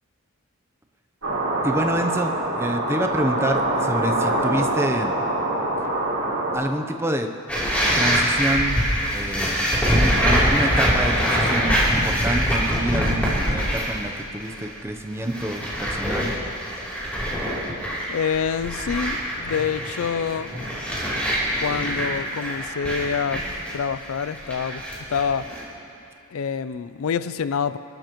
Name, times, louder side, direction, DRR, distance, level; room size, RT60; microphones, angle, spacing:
sound 1, 1.2-6.6, right 1 dB, 80° right, 3.5 m, -24 dB
voice 1, 1.6-5.1 6.5-7.3 8.0-8.8 9.1-16.3, right 1 dB, 10° right, 4 dB, 0.7 m, -27 dB
sound 2, 7.5-14.1 14.4-14.8 15.1-25.6, equal, 5° left, 3.2 m, -24 dB
voice 2, 18.1-20.5 21.6-23.4 23.7-24.8 25.1-25.5 26.3-27.8, left 6 dB, 70° left, 14 dB, 0.4 m, -26 dB
27.0 x 12.0 x 3.1 m, 2.6 s
head